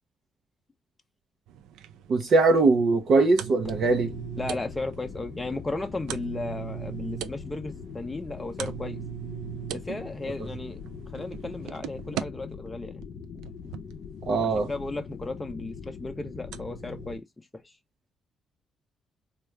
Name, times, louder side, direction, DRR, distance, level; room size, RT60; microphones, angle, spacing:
sound 1, 1.5-12.2 13.0-13.9 15.1-15.2 15.7-15.8 16.5-17.2, right 12 dB, 90° right, 0.4 m, -40 dB
voice 1, 2.1-4.2 14.3-14.7, right 3 dB, 60° right, 0.7 m, -21 dB
sound 2, 3.6-17.2, left 6 dB, 60° left, 0.6 m, -42 dB
voice 2, 4.4-9.0 9.7-10.8 11.1-13.0 14.4-17.2 17.5-17.8, left 2 dB, 15° left, 0.6 m, -35 dB
3.4 x 2.3 x 3.1 m
cardioid pair, 90°, 0 cm